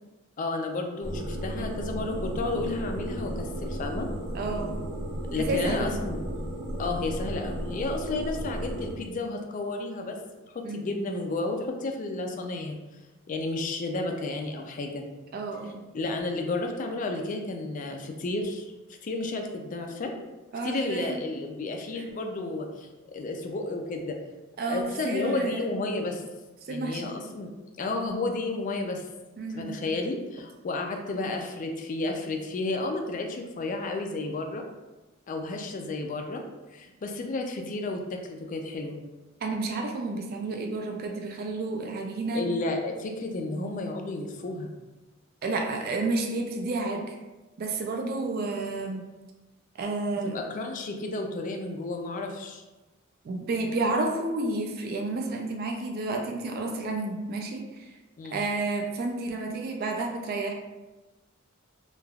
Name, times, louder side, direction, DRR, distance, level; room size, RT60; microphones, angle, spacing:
voice 1, 0.4-4.1 5.3-6.2 6.8-10.2 10.7-12.8 13.3-15.0 15.9-18.7 19.0-20.1 20.6-24.2 24.7-26.2 26.7-27.5 27.8-29.0 29.6-34.6 35.3-36.4 36.7-39.0 42.3-44.7 50.3-52.6 58.2-58.4, left 2 dB, 40° left, 3 dB, 0.3 m, -32 dB
sound 1, 1.0-8.9, equal, 65° right, 1.0 m, -34 dB
voice 2, 4.3-4.8 5.4-5.9 10.6-10.9 15.3-15.8 20.5-21.1 21.9-22.1 24.6-25.8 26.7-27.1 29.4-29.8 39.4-42.4 45.4-47.2 47.6-49.0 49.8-50.4 53.2-57.9 58.3-60.5, right 2 dB, 50° right, 2 dB, 0.3 m, -31 dB
3.2 x 2.3 x 2.2 m, 1.1 s
head